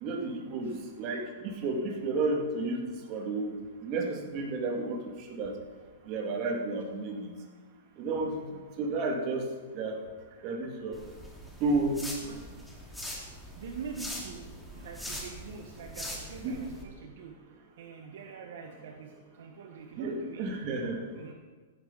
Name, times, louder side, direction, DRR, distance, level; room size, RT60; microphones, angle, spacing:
voice 1, 0.0-3.5 3.8-5.5 6.1-7.3 8.0-8.4 8.8-9.5 9.7-10.0 10.4-11.0 11.6-12.0 16.4-16.6 19.9-21.1, right 3 dB, 40° right, 2 dB, 2.4 m, -32 dB
sound 1, 10.9-16.8, equal, 5° left, 2.4 m, -42 dB
voice 2, 13.6-17.4 17.8-20.5 21.1-21.3, right 5 dB, 70° right, 3 dB, 1.4 m, -44 dB
15.0 x 10.0 x 4.1 m, 1.4 s
hypercardioid pair, 125°, 0 cm